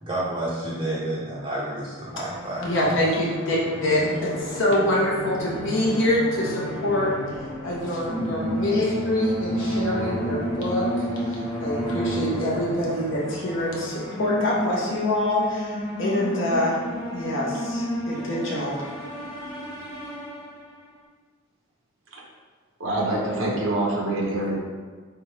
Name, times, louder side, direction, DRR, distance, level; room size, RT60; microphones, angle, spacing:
voice 1, 0.0-2.6, right 1 dB, 25° right, -8 dB, 0.6 m, -30 dB
sound 1, 2.1-20.8, equal, 20° left, 1.0 m, -31 dB
voice 2, 2.6-7.1 7.6-11.1 11.6-16.8 17.1-18.9, left 1 dB, 70° left, -5 dB, 0.8 m, -25 dB
voice 3, 22.8-24.6, right 1 dB, 85° right, -2 dB, 0.9 m, -26 dB
3.8 x 3.4 x 3.2 m, 1.5 s
head